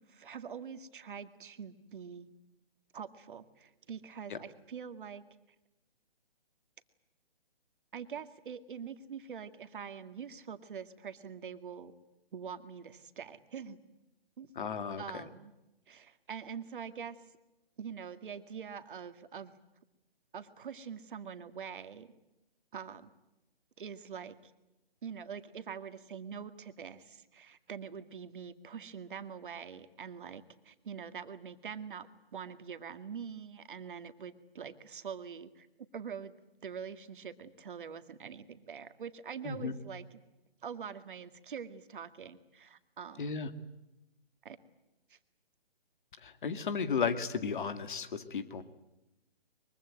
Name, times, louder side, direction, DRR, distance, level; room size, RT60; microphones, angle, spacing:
voice 1, 0.0-2.3 2.9-5.2 7.9-11.9 12.3-13.8 14.4-14.5 15.0-15.5 15.9-17.2 17.8-19.5 20.3-22.1 22.7-23.1 23.8-24.5 25.0-35.7 35.9-36.4 36.6-40.2 40.6-43.3 44.4-44.6 45.1-45.2, right 7 dB, 55° right, 10 dB, 2.1 m, -44 dB
voice 2, 14.6-15.2 39.4-39.7 43.2-43.5 46.2-48.6, left 6 dB, 55° left, 11 dB, 2.3 m, -34 dB
23.5 x 23.0 x 9.0 m, 0.96 s
figure-of-eight pair, 145°, 30 cm